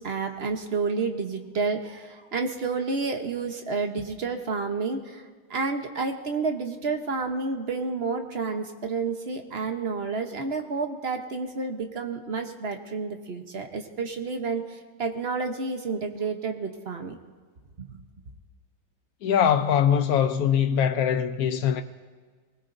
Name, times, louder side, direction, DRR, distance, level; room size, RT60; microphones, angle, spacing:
voice 1, 0.0-5.2 5.5-17.2 17.8-18.0, right 4 dB, 50° right, 0.7 m, -30 dB
voice 2, 19.2-21.8, left 8 dB, 85° left, 0.8 m, -22 dB
23.5 x 20.0 x 2.6 m
omnidirectional pair, 2.3 m